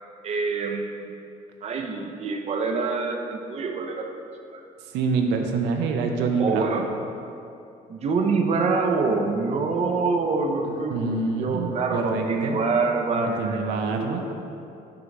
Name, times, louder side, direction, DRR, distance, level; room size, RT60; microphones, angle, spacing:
voice 1, 0.2-1.1 1.6-4.1 4.5-4.6 6.4-6.9 7.9-14.3, right 4 dB, 40° right, 3 dB, 0.5 m, -26 dB
voice 2, 4.9-6.7 10.9-12.6 13.2-14.2, right 4 dB, 90° right, 3 dB, 0.5 m, -26 dB
6.5 x 2.9 x 5.1 m, 2.7 s
cardioid pair, 110°, 17 cm